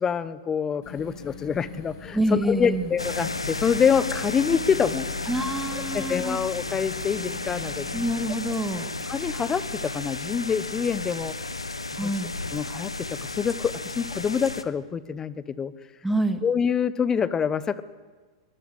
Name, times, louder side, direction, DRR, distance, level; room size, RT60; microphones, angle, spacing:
voice 1, 0.0-5.1 5.9-7.9 9.1-11.3 12.0-12.1 12.5-15.7 16.4-17.8, left 7 dB, 20° left, 16 dB, 1.0 m, -26 dB
sound 1, 0.8-8.2, left 6 dB, 50° left, 7.5 m, -42 dB
voice 2, 2.1-2.9 5.3-6.4 7.9-8.9 12.0-12.3 16.0-16.4, right 1 dB, 5° right, 7 dB, 2.3 m, -27 dB
sound 2, 3.0-14.6, left 3 dB, 85° left, 1.2 m, -33 dB
24.0 x 20.5 x 8.2 m, 1.4 s
figure-of-eight pair, 100°, 3 cm